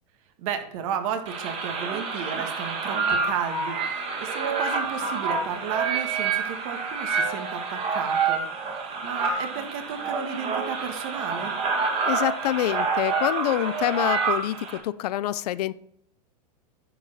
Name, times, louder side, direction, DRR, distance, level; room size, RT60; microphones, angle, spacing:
voice 1, 0.4-8.4 9.0-11.5, right 8 dB, 55° right, 7 dB, 1.7 m, -33 dB
sound 1, 1.3-14.8, right 4 dB, 30° right, 2.2 m, -28 dB
voice 2, 12.1-15.7, left 13 dB, 70° left, 18 dB, 0.6 m, -26 dB
10.0 x 4.9 x 5.7 m, 0.68 s
supercardioid pair, 140°, 21 cm